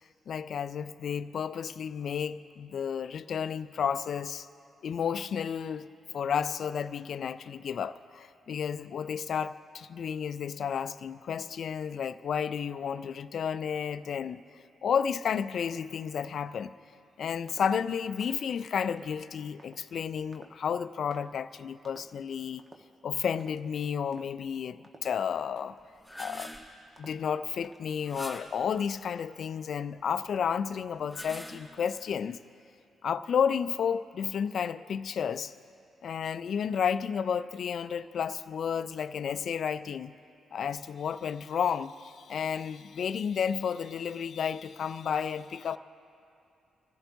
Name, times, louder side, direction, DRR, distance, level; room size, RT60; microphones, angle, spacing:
voice 1, 0.3-4.5 4.8-5.9 6.1-14.4 14.8-16.7 17.2-22.6 23.0-25.8 26.2-26.5 27.0-32.4 33.0-35.5 36.0-40.1 40.5-45.8, left 7 dB, 60° left, 14 dB, 0.4 m, -32 dB
sound 1, 17.5-17.8 18.2-18.5 18.9-19.2 19.6-19.8 20.3-20.7 21.1-21.3 21.8-22.2 22.6-22.9 23.4-23.7 24.1-24.4 24.8-25.2 25.6-25.8 26.2-26.6 27.0-27.3 27.6-28.0, right 2 dB, 40° right, 1.2 m, -55 dB
sound 2, 25.8-26.8 28.0-28.7 30.9-32.0, equal, 5° left, 3.3 m, -44 dB
25.5 x 15.5 x 2.7 m, 2.6 s
hypercardioid pair, 40°, 0 cm